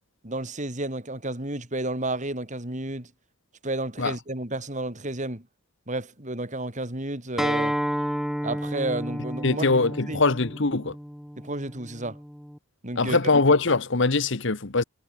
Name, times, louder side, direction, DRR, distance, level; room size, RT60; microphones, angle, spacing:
voice 1, 0.2-3.1 3.6-5.5 5.9-7.8 8.4-9.7 10.1-10.2 11.4-12.2 12.8-13.3, right 2 dB, 40° right, 4.0 m, -31 dB
Acoustic guitar, 7.4-12.6, equal, ahead, 3.3 m, -31 dB
voice 2, 9.4-10.9 13.0-14.8, left 3 dB, 65° left, 1.2 m, -22 dB
head